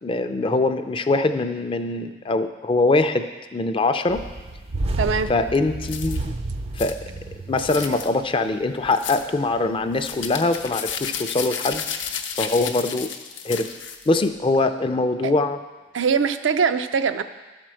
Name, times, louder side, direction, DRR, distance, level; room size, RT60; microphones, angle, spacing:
voice 1, 0.0-4.2 5.3-6.2 6.7-7.0 7.5-11.8 12.4-13.1 13.4-13.7 14.1-15.6, left 2 dB, 30° left, 8 dB, 0.4 m, -22 dB
sound 1, 4.1-8.3 8.7-8.9 9.5-10.2 10.6-10.7, right 2 dB, 30° right, 0.4 m, -31 dB
voice 2, 5.0-5.3 15.2-15.3 15.9-17.2, right 6 dB, 85° right, 9 dB, 0.5 m, -22 dB
sound 2, 5.9-6.2 6.8-7.0 7.6-8.1 8.9-9.3 10.0-14.2, left 7 dB, 75° left, 0.7 m, -32 dB
12.5 x 4.5 x 6.3 m, 1.2 s
head